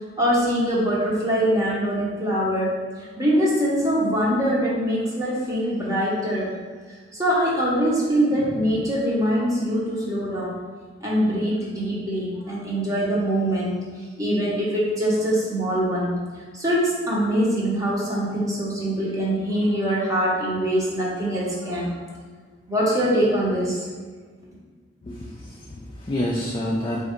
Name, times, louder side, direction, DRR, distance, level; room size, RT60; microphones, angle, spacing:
voice 1, 0.2-6.5 7.1-10.6 11.0-13.8 14.2-16.2 16.5-22.0 22.7-23.9, equal, 20° right, -5 dB, 0.9 m, -23 dB
voice 2, 25.0-27.0, left 1 dB, 25° left, -3 dB, 0.3 m, -28 dB
3.8 x 2.4 x 4.3 m, 1.5 s
head